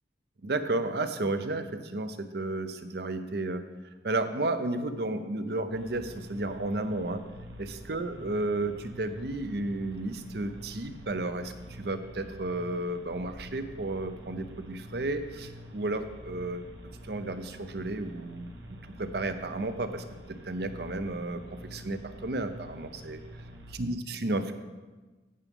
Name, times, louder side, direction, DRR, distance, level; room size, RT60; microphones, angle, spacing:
voice 1, 0.4-3.6 4.0-7.2 7.6-16.7 17.0-23.2 23.8-24.5, right 2 dB, 60° right, 10 dB, 0.6 m, -33 dB
sound 1, 5.7-23.8, equal, 90° right, 1.3 m, -47 dB
15.0 x 6.0 x 3.6 m, 1.3 s
head